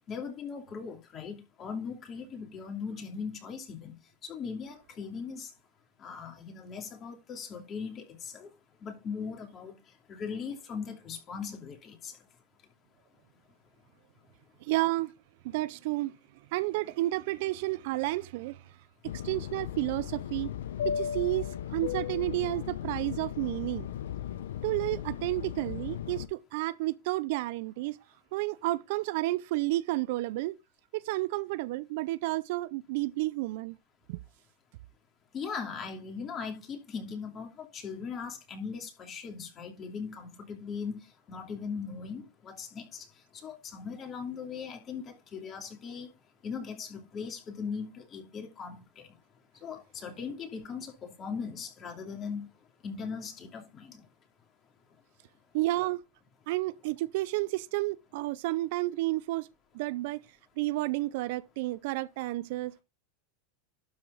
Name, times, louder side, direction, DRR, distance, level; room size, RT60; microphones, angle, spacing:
voice 1, 0.1-5.5 6.0-8.5 8.8-9.7 10.1-12.1 35.3-41.0 41.3-43.1 43.4-46.1 46.4-49.1 49.6-52.5 52.8-54.0, left 6 dB, 35° left, 2.8 m, -39 dB
voice 2, 14.6-15.1 15.4-16.1 16.5-18.6 19.2-20.5 20.8-23.9 24.6-28.0 28.3-30.6 30.9-33.8 34.1-34.2 55.5-56.0 56.5-59.5 59.7-60.2 60.6-62.8, right 18 dB, 65° right, 0.5 m, -31 dB
Fixed-wing aircraft airplane, 19.0-26.3, left 9 dB, 85° left, 0.8 m, -36 dB
12.0 x 4.6 x 4.0 m
hypercardioid pair, 110°, 0 cm